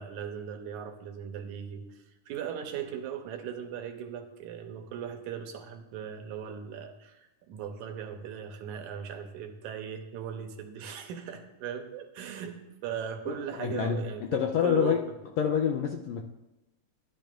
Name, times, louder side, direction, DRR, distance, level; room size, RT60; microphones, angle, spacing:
voice 1, 0.0-15.0, right 8 dB, 80° right, 6 dB, 2.2 m, -38 dB
voice 2, 13.3-15.0 15.4-16.2, left 8 dB, 80° left, 2 dB, 1.6 m, -27 dB
12.5 x 11.5 x 2.5 m, 0.96 s
omnidirectional pair, 3.5 m